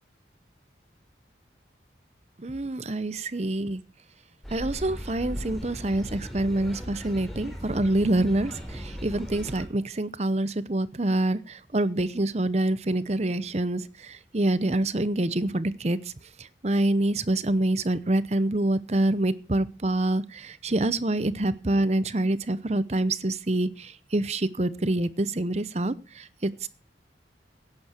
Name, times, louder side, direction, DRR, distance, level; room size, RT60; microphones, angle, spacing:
voice 1, 2.4-3.8 4.5-16.1 16.4-26.7, right 1 dB, 40° right, 16 dB, 0.8 m, -26 dB
sound 1, 4.4-9.6, equal, ahead, 3.8 m, -38 dB
16.5 x 10.5 x 4.5 m, 0.33 s
head